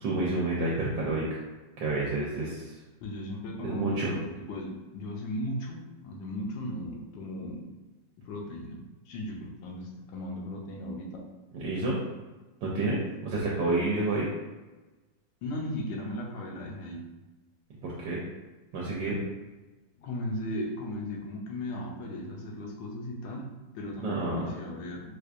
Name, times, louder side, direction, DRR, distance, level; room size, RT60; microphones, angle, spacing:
voice 1, 0.0-1.4 1.8-2.7 3.6-4.1 11.5-12.0 12.6-14.3 17.8-18.2 18.7-19.2 24.0-24.4, right 2 dB, 80° right, -4 dB, 1.3 m, -29 dB
voice 2, 3.0-7.7 8.2-11.2 15.4-17.1 20.0-25.1, left 1 dB, 75° left, 0 dB, 1.3 m, -37 dB
4.4 x 2.4 x 2.5 m, 1.2 s
omnidirectional pair, 2.0 m